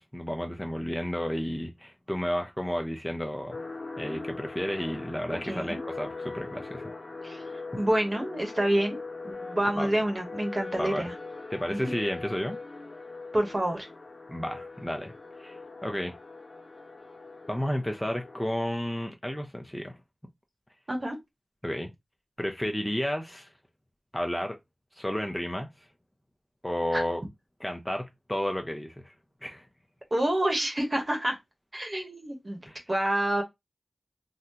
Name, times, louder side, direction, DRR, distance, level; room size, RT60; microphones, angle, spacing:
voice 1, 0.0-3.6 4.0-6.9 9.8-9.9 10.8-11.1 11.5-12.6 14.3-15.1 15.4-16.2 17.5-20.0 21.6-21.9 22.4-23.5 24.1-24.6 25.0-25.7 26.6-27.2 27.6-29.1 29.4-29.7 32.7-32.8, equal, 10° left, 0.6 m, -32 dB
sound 1, 3.5-18.5, left 3 dB, 55° left, 1.1 m, -41 dB
voice 2, 5.4-5.8 7.2-7.4 7.8-11.1 11.7-11.9 13.3-13.9 20.9-21.2 26.9-27.0 30.1-31.4 31.7-32.6 32.9-33.4, right 1 dB, 40° right, 1.0 m, -28 dB
3.7 x 2.1 x 2.8 m
wide cardioid pair, 70°, 0 cm